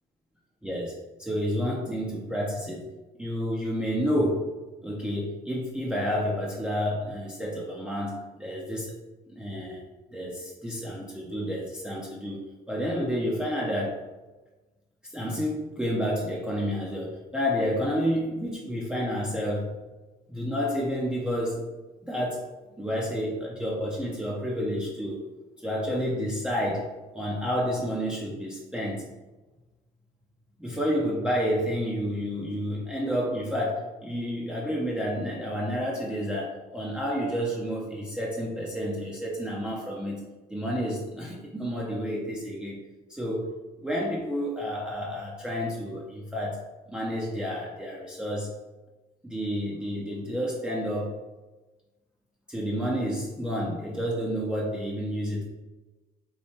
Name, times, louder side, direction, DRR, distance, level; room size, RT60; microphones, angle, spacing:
voice 1, 0.6-2.9 3.2-4.5 4.8-8.9 9.3-9.8 10.1-14.0 15.0-19.8 20.3-21.7 22.0-22.5 22.8-25.3 25.6-29.0 30.6-40.2 40.5-42.8 43.1-43.6 43.8-46.6 46.9-48.5 49.2-51.2 52.5-55.4, equal, 5° right, -5 dB, 0.5 m, -30 dB
3.1 x 2.2 x 4.2 m, 1.2 s
cardioid pair, 110°, 17 cm